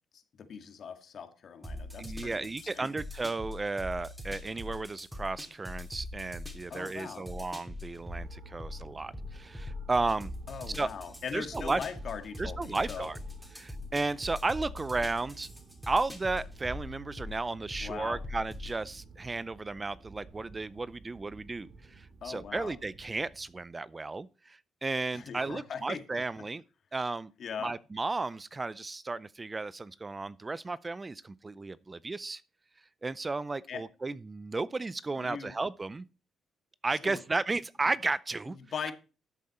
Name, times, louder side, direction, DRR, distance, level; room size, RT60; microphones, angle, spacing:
voice 1, 0.1-2.9 6.7-7.2 10.5-13.1 17.8-18.2 22.2-22.7 25.1-26.0 27.4-27.7 33.7-33.8 35.2-35.5 36.9-37.2 38.5-38.9, left 6 dB, 55° left, 1.9 m, -40 dB
sound 1, 1.6-18.8, left 2 dB, ahead, 3.2 m, -43 dB
voice 2, 2.0-10.3 10.8-10.9 11.3-11.8 12.4-13.2 13.5-15.5 15.9-26.6 26.9-27.3 27.6-32.4 33.0-36.0 36.8-38.6, right 3 dB, 25° right, 0.4 m, -34 dB
sound 2, 7.7-23.7, right 4 dB, 50° right, 2.4 m, -53 dB
13.0 x 7.8 x 4.3 m
cardioid pair, 90°, 0 cm